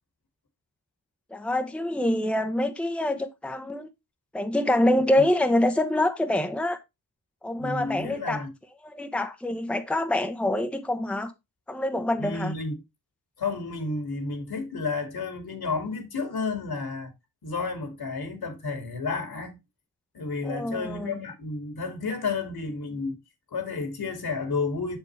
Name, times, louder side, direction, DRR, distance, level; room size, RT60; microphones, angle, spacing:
voice 1, 1.3-3.9 4.3-6.8 7.4-8.4 8.8-11.3 11.7-12.5 20.4-21.2, left 1 dB, 5° left, 0.9 m, -26 dB
voice 2, 7.6-8.5 12.2-12.8 13.4-17.1 17.4-19.6 20.1-23.2 23.5-25.0, left 4 dB, 65° left, 2.4 m, -31 dB
7.0 x 6.8 x 3.2 m
cardioid pair, 70°, 40 cm